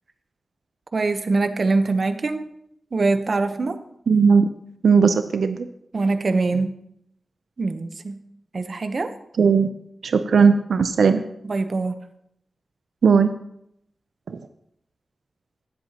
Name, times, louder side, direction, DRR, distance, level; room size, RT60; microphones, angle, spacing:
voice 1, 0.9-2.4 2.9-3.8 5.9-6.7 7.6-8.2 8.5-9.1 11.4-11.9, right 3 dB, 50° right, 9 dB, 0.8 m, -23 dB
voice 2, 4.1-4.5 4.8-5.7 9.4-9.7 10.0-11.2 13.0-13.3 14.3-14.4, right 5 dB, 85° right, 9 dB, 0.5 m, -17 dB
18.0 x 7.9 x 2.9 m, 0.76 s
wide cardioid pair, 110°, 0 cm